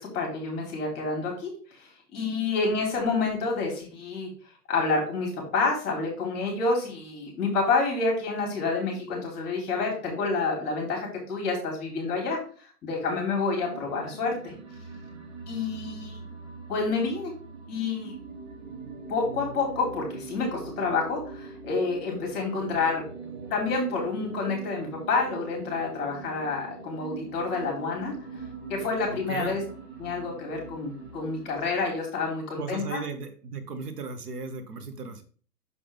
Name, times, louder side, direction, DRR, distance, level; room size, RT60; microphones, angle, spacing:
voice 1, 0.0-4.3 4.7-14.5 15.5-16.2 16.7-17.3 17.7-18.1 19.1-23.0 23.5-28.2 28.7-29.6 30.0-33.0, left 4 dB, 20° left, 0 dB, 3.2 m, -28 dB
sound 1, 13.5-32.1, right 4 dB, 40° right, 1.5 m, -42 dB
voice 2, 29.1-29.5 32.6-35.2, right 4 dB, 65° right, 8 dB, 1.2 m, -36 dB
6.7 x 5.4 x 3.5 m, 0.43 s
hypercardioid pair, 155°, 50 cm